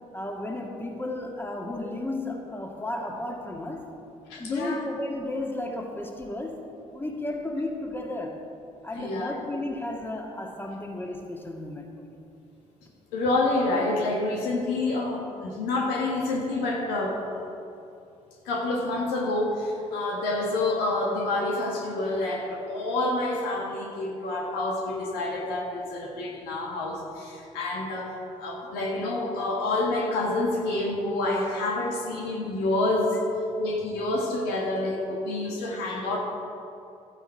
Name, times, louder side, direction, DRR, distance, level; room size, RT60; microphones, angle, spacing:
voice 1, 0.1-3.9 4.4-6.6 6.9-8.4 8.8-11.9, left 1 dB, 15° left, 1 dB, 2.0 m, -33 dB
voice 2, 4.3-4.8 8.9-9.3 13.1-17.2 18.4-33.2 33.6-36.2, left 2 dB, 80° left, -1 dB, 1.7 m, -28 dB
12.5 x 9.1 x 4.6 m, 2.7 s
hypercardioid pair, 50°, 16 cm